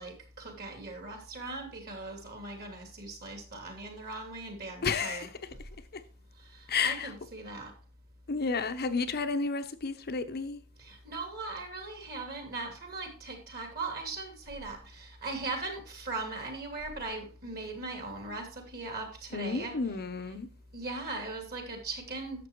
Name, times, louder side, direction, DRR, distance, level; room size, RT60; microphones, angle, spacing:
voice 1, 0.0-5.3 6.4-7.7 10.8-19.8 20.7-22.5, right 3 dB, 45° right, 2.7 m, -39 dB
voice 2, 4.8-5.3 6.7-7.1 8.3-10.6 19.3-20.5, left 4 dB, 45° left, 0.8 m, -31 dB
11.0 x 7.4 x 3.1 m
head